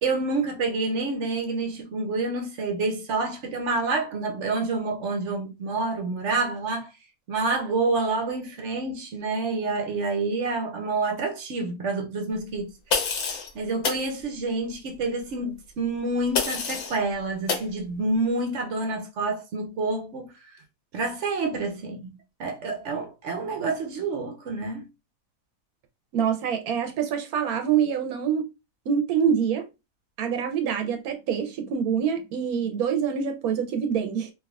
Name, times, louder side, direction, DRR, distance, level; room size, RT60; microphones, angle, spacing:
voice 1, 0.0-6.9 7.3-12.7 13.5-20.3 20.9-24.9, right 3 dB, 60° right, 0.9 m, -28 dB
sound 1, 12.9-13.5 13.8-14.0 16.3-17.0 17.5-17.7, left 5 dB, 85° left, 1.3 m, -27 dB
voice 2, 26.1-28.5 28.9-29.6 30.2-34.3, right 7 dB, 85° right, 1.1 m, -25 dB
3.4 x 2.7 x 2.3 m
omnidirectional pair, 1.5 m